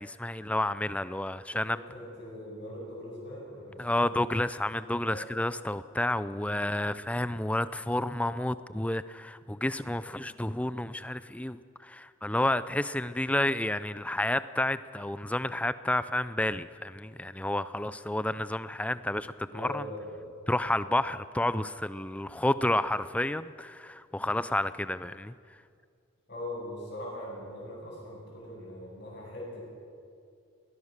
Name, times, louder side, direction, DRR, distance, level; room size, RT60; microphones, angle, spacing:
voice 1, 0.0-1.8 3.8-19.9 20.5-25.3, left 1 dB, 5° left, 14 dB, 0.4 m, -30 dB
voice 2, 1.6-4.0 5.1-5.3 19.5-20.2 26.3-29.7, left 1 dB, 45° left, -10 dB, 7.1 m, -41 dB
20.5 x 19.5 x 6.6 m, 2.3 s
head